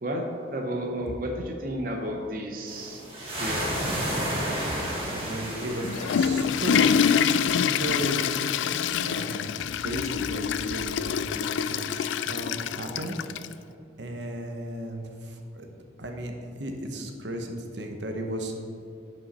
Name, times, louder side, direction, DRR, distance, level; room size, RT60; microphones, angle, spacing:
voice 1, 0.0-3.0 3.4-3.7, equal, 50° right, 1 dB, 0.8 m, -32 dB
sound 1, 2.7-8.9, equal, 30° right, 1.9 m, -33 dB
voice 2, 5.1-8.3 9.0-13.2 14.0-15.7 16.0-16.3 16.6-18.6, right 1 dB, 75° right, 3 dB, 1.0 m, -35 dB
Water / Toilet flush, 5.7-13.5, left 7 dB, 90° left, 0.3 m, -26 dB
11.0 x 5.4 x 4.2 m, 2.7 s
head